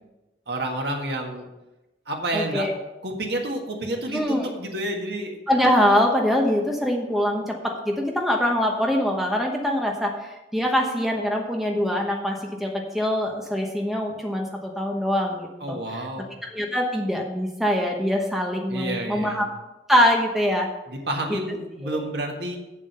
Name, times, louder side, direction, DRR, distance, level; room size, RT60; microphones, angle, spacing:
voice 1, 0.5-1.5 2.1-2.7 3.0-5.4 15.6-16.3 18.7-19.4 20.9-22.6, right 1 dB, 65° right, 2 dB, 1.7 m, -29 dB
voice 2, 2.3-2.7 4.1-4.5 5.5-15.8 16.5-19.5 19.9-20.7 21.8-22.1, equal, ahead, 0 dB, 1.1 m, -23 dB
8.6 x 7.4 x 5.6 m, 0.99 s
head